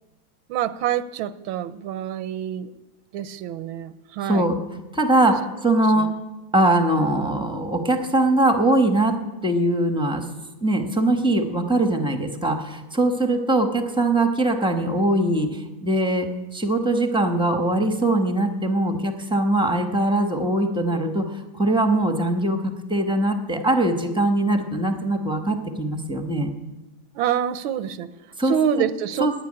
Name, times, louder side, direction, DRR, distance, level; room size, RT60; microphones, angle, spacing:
voice 1, 0.5-2.7 3.1-4.5 6.0-6.1 27.1-28.1 28.4-29.3, right 10 dB, 85° right, 13 dB, 1.5 m, -26 dB
voice 2, 4.2-4.6 4.9-6.2 6.5-10.3 10.6-26.5 28.4-28.5 29.2-29.3, right 1 dB, 5° right, 5 dB, 0.5 m, -22 dB
10.5 x 10.0 x 9.7 m, 1.1 s
omnidirectional pair, 2.2 m